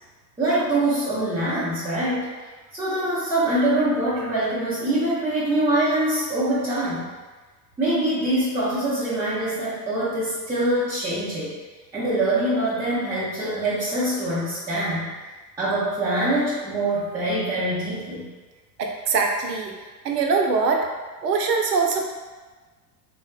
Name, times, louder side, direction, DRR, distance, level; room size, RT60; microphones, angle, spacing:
voice 1, 0.4-2.3 2.7-7.1 7.8-11.5 11.9-15.1 15.6-18.3, right 1 dB, 5° right, -13 dB, 0.4 m, -24 dB
voice 2, 18.8-19.7 20.0-20.9 21.2-22.1, right 4 dB, 75° right, 2 dB, 0.6 m, -22 dB
3.8 x 2.1 x 2.2 m, 1.3 s
figure-of-eight pair, 80°, 50 cm